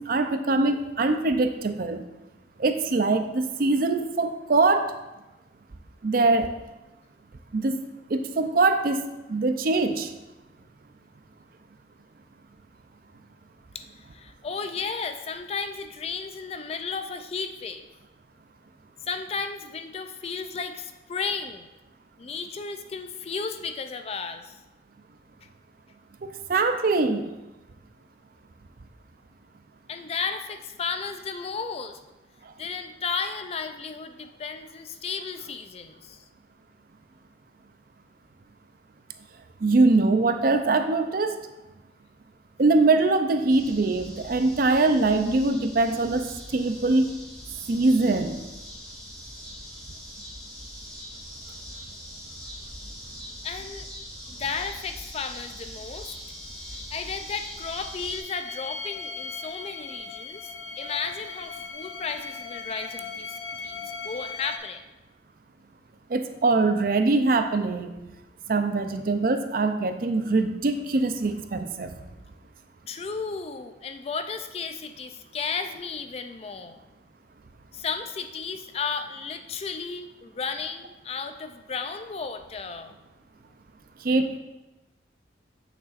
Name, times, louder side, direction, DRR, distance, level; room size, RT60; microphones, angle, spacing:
voice 1, 0.0-2.0 2.6-4.9 6.0-6.5 7.5-7.8 8.1-9.0 9.3-10.1 26.2-27.3 39.6-41.4 42.6-47.1 47.7-48.4 66.1-68.0 68.5-71.9 84.0-84.4, right 3 dB, 50° right, 8 dB, 0.5 m, -23 dB
voice 2, 13.7-17.9 19.0-21.7 22.2-24.6 29.9-32.0 32.6-36.2 53.4-53.9 54.3-56.2 56.9-63.8 64.0-64.8 72.9-76.8 77.7-82.9, left 5 dB, 35° left, 8 dB, 0.4 m, -34 dB
sound 1, 43.5-58.2, equal, 5° left, 2.1 m, -42 dB
sound 2, 54.7-54.8 55.0-55.1 55.5-64.6, left 4 dB, 85° left, 0.7 m, -39 dB
8.3 x 6.7 x 2.5 m, 1.0 s
head